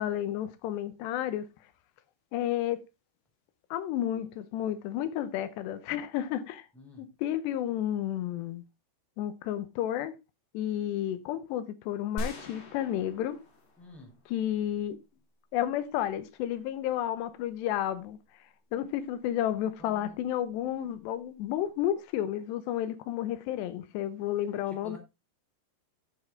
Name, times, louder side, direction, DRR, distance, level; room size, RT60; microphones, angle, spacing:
voice 1, 0.0-1.5 2.3-2.8 3.7-6.7 7.0-8.6 9.2-10.1 10.5-13.4 14.3-15.0 15.5-18.2 18.7-25.0, left 11 dB, 90° left, 3.1 m, -31 dB
voice 2, 6.7-7.1 13.8-14.2 19.8-20.2 24.7-25.0, left 1 dB, ahead, 3.0 m, -49 dB
sound 1, 12.2-14.4, equal, 40° left, 2.6 m, -41 dB
11.5 x 6.6 x 3.7 m
omnidirectional pair, 4.8 m